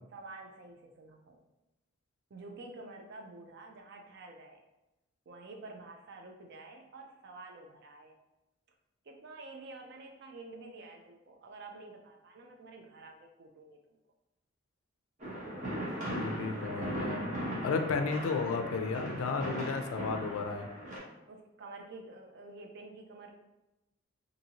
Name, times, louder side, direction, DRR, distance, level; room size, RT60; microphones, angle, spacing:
voice 1, 0.1-1.4 2.3-4.6 5.3-8.2 9.0-14.0 21.3-23.4, right 3 dB, 55° right, 3 dB, 0.4 m, -49 dB
sound 1, 15.2-21.0, right 1 dB, 35° right, 0.8 m, -38 dB
voice 2, 16.1-20.7, left 4 dB, 80° left, 6 dB, 0.4 m, -33 dB
2.7 x 2.6 x 2.8 m, 0.98 s
head